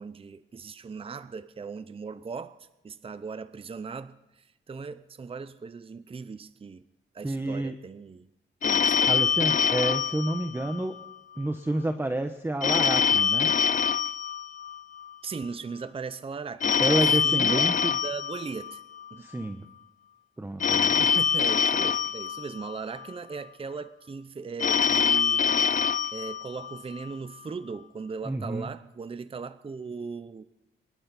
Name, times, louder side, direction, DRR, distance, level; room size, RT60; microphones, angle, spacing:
voice 1, 0.0-6.8 7.1-8.3 8.6-9.2 15.2-18.8 19.1-19.3 21.0-25.8 26.1-30.4, right 5 dB, 25° right, 14 dB, 0.6 m, -38 dB
voice 2, 7.2-7.7 9.1-10.9 11.4-13.5 16.8-17.9 19.2-19.7 20.4-21.0 28.3-28.7, right 1 dB, 10° right, 7 dB, 0.9 m, -29 dB
Telephone, 8.6-11.1 12.6-15.1 16.6-19.1 20.6-23.1 24.6-27.1, left 7 dB, 40° left, 0.4 m, -25 dB
24.0 x 12.0 x 4.1 m, 0.95 s
cardioid pair, 105°, 21 cm